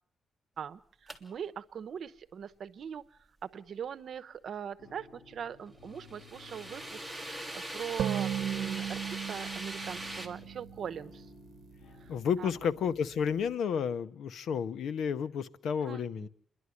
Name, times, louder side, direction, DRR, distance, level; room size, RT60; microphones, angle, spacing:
voice 1, 0.6-3.0 3.5-11.3 12.4-12.5 15.8-16.3, right 8 dB, 60° right, 11 dB, 0.9 m, -41 dB
sound 1, 1.1-1.2 5.9-10.3, right 1 dB, 5° left, 2.2 m, -41 dB
sound 2, 4.8-12.8, left 3 dB, 55° left, 7.4 m, -56 dB
sound 3, 8.0-11.5, right 10 dB, 90° right, 0.8 m, -36 dB
voice 2, 12.1-16.3, left 7 dB, 80° left, 13 dB, 0.8 m, -31 dB
28.0 x 11.5 x 9.7 m, 0.66 s
cardioid pair, 135°, 0 cm